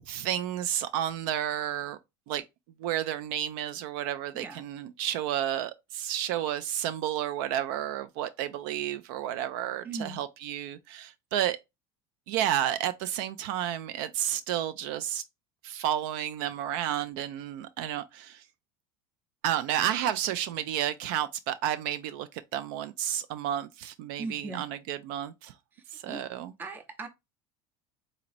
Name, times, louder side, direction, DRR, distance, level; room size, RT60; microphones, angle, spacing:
voice 1, 0.1-2.0 2.3-2.4 2.8-11.6 12.3-15.2 15.6-18.4 19.4-25.5 25.9-26.5, right 11 dB, 70° right, 0.4 m, -31 dB
voice 2, 4.3-4.6 9.8-10.2 24.2-24.7 25.7-26.2 26.6-27.1, right 3 dB, 15° right, 0.6 m, -39 dB
4.0 x 2.9 x 2.5 m
cardioid pair, 155°, 12 cm